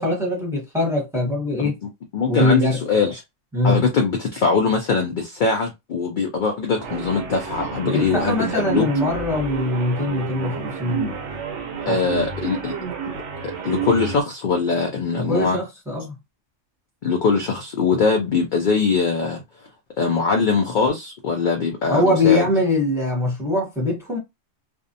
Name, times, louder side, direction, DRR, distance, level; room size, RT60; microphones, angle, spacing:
voice 1, 0.0-1.8 2.3-2.8 3.5-3.8 7.8-11.2 11.8-12.0 15.1-16.1 21.9-24.2, left 2 dB, ahead, 0.9 m, -22 dB
voice 2, 2.1-3.2 3.6-8.9 11.9-12.7 13.4-15.6 17.0-19.4 20.0-22.4, left 4 dB, 65° left, 0.4 m, -22 dB
sound 1, 6.8-14.2, right 5 dB, 70° right, 0.9 m, -30 dB
2.5 x 2.0 x 2.6 m
omnidirectional pair, 1.3 m